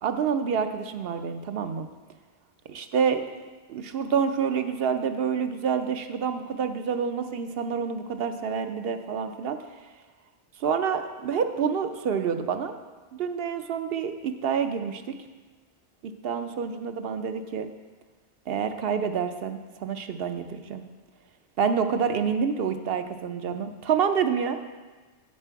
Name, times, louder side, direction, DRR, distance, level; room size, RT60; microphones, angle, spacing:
voice 1, 0.0-1.9 2.7-3.2 3.7-9.6 10.6-12.8 13.1-15.2 16.2-17.7 18.5-20.8 21.6-24.7, right 6 dB, 70° right, 8 dB, 0.8 m, -28 dB
8.2 x 7.5 x 4.6 m, 1.3 s
omnidirectional pair, 1.1 m